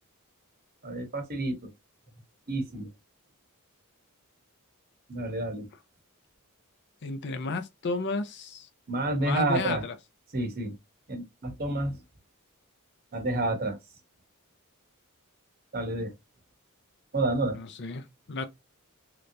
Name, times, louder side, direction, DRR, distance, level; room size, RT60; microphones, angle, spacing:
voice 1, 0.8-1.7 2.5-2.9 5.1-5.7 8.9-9.8 10.3-10.8 11.1-12.0 13.1-13.8 15.7-16.1 17.1-17.6, right 2 dB, 45° right, 0.9 m, -29 dB
voice 2, 7.0-8.7 9.2-10.0 17.5-18.5, left 3 dB, 50° left, 0.6 m, -33 dB
3.3 x 2.9 x 2.5 m
head